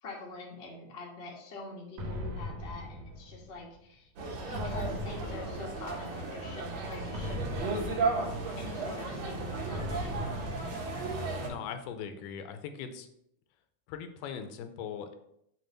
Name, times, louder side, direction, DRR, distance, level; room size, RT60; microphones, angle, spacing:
voice 1, 0.0-4.1 4.4-7.9 8.6-10.3, left 2 dB, 55° left, -2 dB, 0.6 m, -45 dB
sound 1, 2.0-3.7 4.5-6.3 7.1-8.9 9.7-11.5, left 1 dB, 70° right, 2.3 m, -40 dB
sound 2, 4.2-11.5, right 3 dB, 85° right, 2.9 m, -35 dB
voice 2, 11.4-13.1 13.9-15.1, left 7 dB, 85° left, 8 dB, 2.2 m, -40 dB
7.1 x 3.2 x 5.6 m, 0.76 s
omnidirectional pair, 3.7 m